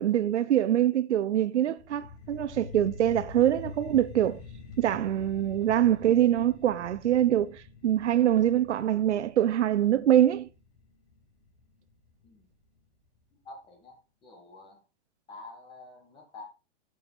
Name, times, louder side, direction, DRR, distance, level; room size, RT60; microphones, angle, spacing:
voice 1, 0.0-4.4 4.8-10.5, right 11 dB, 85° right, 0.8 m, -24 dB
sound 1, 1.8-12.8, left 5 dB, 70° left, 3.3 m, -46 dB
voice 2, 13.4-14.8 15.3-16.4, left 2 dB, 15° left, 2.1 m, -48 dB
7.5 x 7.1 x 4.7 m
hypercardioid pair, 165°, 34 cm